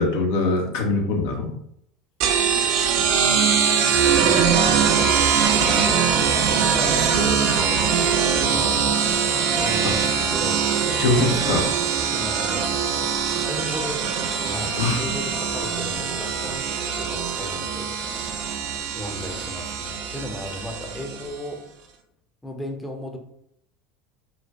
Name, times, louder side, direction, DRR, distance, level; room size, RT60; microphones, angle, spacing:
voice 1, 0.0-1.5 9.8-9.9 10.9-11.7 14.7-15.0, left 3 dB, 65° left, 2 dB, 0.5 m, -22 dB
sound 1, 2.2-21.4, right 7 dB, 55° right, 0.4 m, -22 dB
voice 2, 5.7-8.8 9.5-10.6 11.1-11.7 12.0-12.7 13.5-14.0 14.4-16.6 16.9-17.9 19.0-21.6 22.4-23.2, left 1 dB, 10° left, 2 dB, 0.6 m, -35 dB
4.0 x 2.1 x 2.2 m, 0.72 s
figure-of-eight pair, 75°, 0 cm